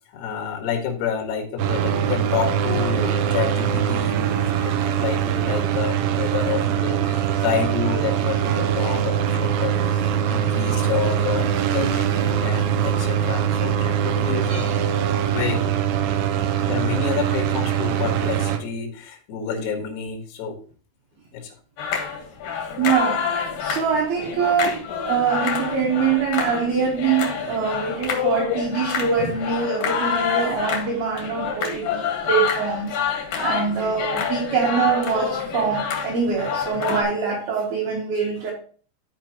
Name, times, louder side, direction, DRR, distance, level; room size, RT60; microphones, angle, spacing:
voice 1, 0.1-14.7 15.3-15.7 16.7-20.6 21.3-21.5 28.2-28.6, left 7 dB, 85° left, 1 dB, 4.3 m, -29 dB
sound 1, 1.6-18.6, right 9 dB, 85° right, 2.4 m, -22 dB
sound 2, 21.8-37.0, left 7 dB, 65° left, 2.2 m, -27 dB
voice 2, 22.8-23.3 23.6-38.5, right 6 dB, 65° right, -1 dB, 2.6 m, -24 dB
14.0 x 4.7 x 3.0 m, 0.42 s
omnidirectional pair, 5.9 m